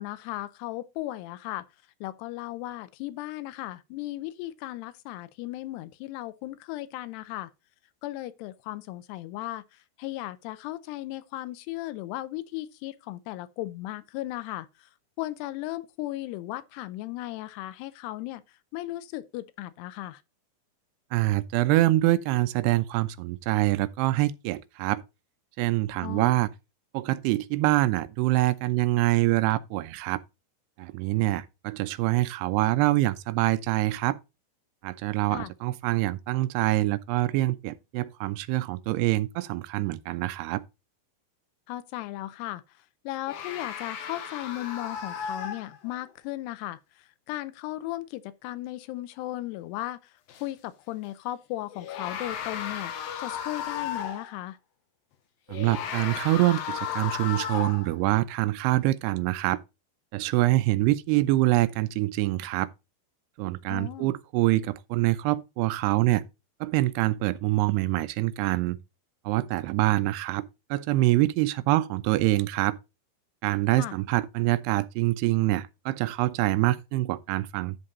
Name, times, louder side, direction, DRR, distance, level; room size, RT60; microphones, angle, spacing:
voice 1, 0.0-1.7 2.0-7.5 8.0-14.9 15.2-18.4 18.7-20.2 26.0-26.4 35.3-35.5 41.7-42.6 43.1-50.1 50.4-52.9 53.2-54.6 63.7-64.1 73.8-74.0, left 16 dB, 90° left, 2.7 m, -36 dB
voice 2, 21.1-25.0 25.6-26.5 26.9-30.2 30.8-34.2 34.8-40.6 55.5-59.6 60.1-62.7 63.4-66.2 66.6-68.8 69.3-72.8 73.4-77.8, right 17 dB, 85° right, 2.7 m, -25 dB
sound 1, 43.3-46.1 50.3-50.4 51.7-54.4 55.5-58.0, left 8 dB, 70° left, 2.9 m, -35 dB
11.0 x 3.8 x 5.3 m
omnidirectional pair, 4.7 m